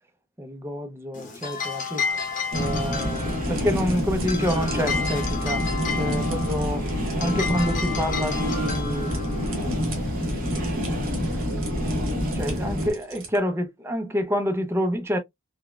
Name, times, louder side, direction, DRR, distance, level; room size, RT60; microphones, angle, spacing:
voice 1, 0.4-2.1 2.5-5.7 5.9-6.9 7.2-9.2 9.6-10.4 12.3-15.2, equal, 10° right, 0.6 m, -28 dB
sound 1, 1.1-11.5, left 5 dB, 40° left, 0.9 m, -33 dB
sound 2, 2.1-13.4, right 5 dB, 75° right, 1.1 m, -45 dB
sound 3, 2.5-12.9, equal, 45° right, 1.2 m, -27 dB
3.9 x 2.2 x 2.3 m
head